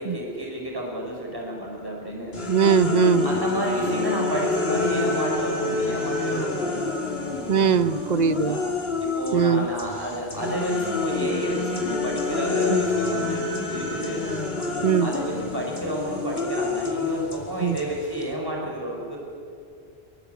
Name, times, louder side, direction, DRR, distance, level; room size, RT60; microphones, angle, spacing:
voice 1, 0.0-2.4 3.2-6.8 8.2-8.6 9.2-14.3 15.0-19.2, equal, 20° right, -1 dB, 5.5 m, -30 dB
sound 1, 2.3-9.4 9.8-18.3, left 3 dB, 75° left, 3.1 m, -28 dB
voice 2, 2.5-3.3 7.5-8.6 9.3-9.7 12.7-12.8 14.8-15.1 17.6-17.8, right 7 dB, 45° right, 14 dB, 0.9 m, -20 dB
23.0 x 23.0 x 8.2 m, 2.5 s
omnidirectional pair, 1.0 m